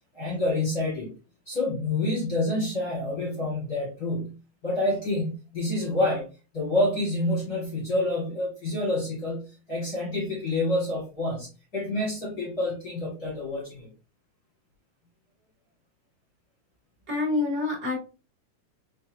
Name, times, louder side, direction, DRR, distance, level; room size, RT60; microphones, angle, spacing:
voice 1, 0.1-1.1 1.4-4.4 4.6-6.3 6.5-13.9, left 1 dB, 45° left, -3 dB, 1.3 m, -28 dB
voice 2, 17.1-18.0, left 3 dB, 25° right, -4 dB, 1.6 m, -26 dB
5.3 x 3.3 x 2.5 m, 0.31 s
omnidirectional pair, 3.8 m